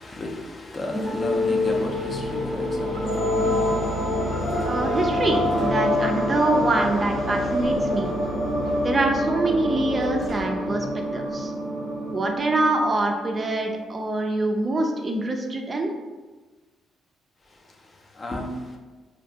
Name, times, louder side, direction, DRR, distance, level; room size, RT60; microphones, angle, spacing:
voice 1, 0.0-4.8 7.1-7.3 17.6-18.8, left 2 dB, 35° left, 2 dB, 0.4 m, -35 dB
sound 1, 0.8-13.8, left 1 dB, 80° left, 1.0 m, -26 dB
voice 2, 4.6-8.1 8.8-11.5 12.1-15.9, right 2 dB, 35° right, 3 dB, 0.3 m, -25 dB
2.5 x 2.2 x 2.7 m, 1.3 s
cardioid pair, 90°, 0 cm